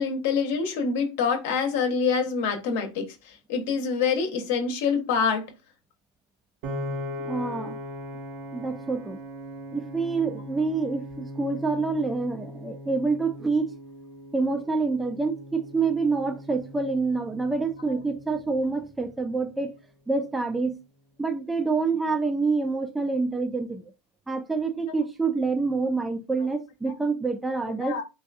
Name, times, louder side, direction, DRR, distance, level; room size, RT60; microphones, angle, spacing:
voice 1, 0.0-5.5 27.8-28.0, left 5 dB, 65° left, 0.8 m, -26 dB
Piano, 6.6-18.9, equal, 55° right, 0.6 m, -39 dB
voice 2, 7.2-7.8 8.5-9.2 9.7-13.7 14.3-19.8 20.1-20.8 21.2-23.9 24.3-28.0, right 4 dB, 10° right, 0.3 m, -27 dB
2.7 x 2.2 x 2.5 m
hypercardioid pair, 110°, 0 cm